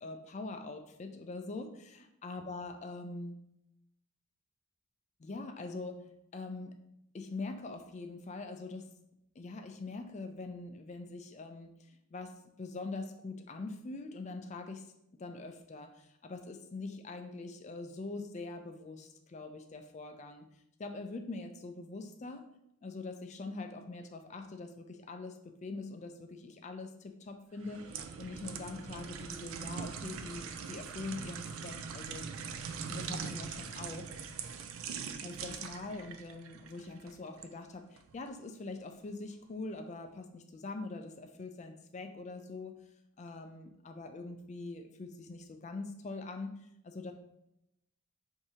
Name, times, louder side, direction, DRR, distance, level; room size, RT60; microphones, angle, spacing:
voice 1, 0.0-3.4 5.2-6.8 7.1-8.9 9.4-14.8 15.2-20.4 20.8-22.5 22.8-32.3 32.9-34.1 35.2-42.8 43.2-46.6 46.8-47.1, left 3 dB, 30° left, 6 dB, 0.3 m, -43 dB
sound 1, 27.6-37.5 38.0-38.1, right 6 dB, 70° right, 0.3 m, -42 dB
4.7 x 2.7 x 2.8 m, 0.82 s
head